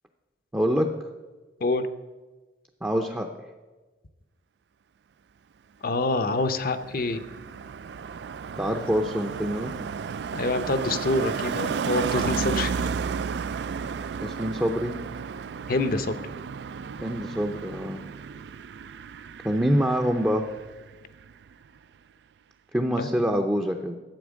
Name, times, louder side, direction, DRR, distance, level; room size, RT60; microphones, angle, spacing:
voice 1, 0.5-0.9 2.8-3.3 8.6-9.7 14.2-14.9 17.0-18.0 19.4-20.5 22.7-23.9, equal, 10° right, 2 dB, 0.6 m, -25 dB
voice 2, 5.8-7.2 10.3-12.9 15.7-16.3 23.0-23.1, left 2 dB, 50° left, 10 dB, 0.7 m, -26 dB
Car passing by, 6.2-20.9 21.2-21.5, right 6 dB, 65° right, 0.3 m, -33 dB
12.0 x 7.9 x 6.3 m, 1.2 s
head